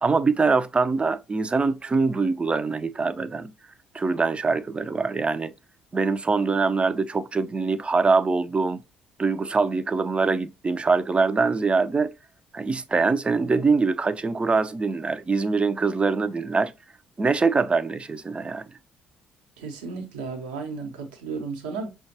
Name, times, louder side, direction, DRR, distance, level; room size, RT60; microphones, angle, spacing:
voice 1, 0.0-3.5 3.9-5.5 5.9-8.8 9.2-12.1 12.5-16.7 17.2-18.7, right 4 dB, 25° right, 0.5 m, -23 dB
voice 2, 19.6-21.9, right 4 dB, 75° right, 0.9 m, -34 dB
5.7 x 2.3 x 2.8 m
hypercardioid pair, 50°, 5 cm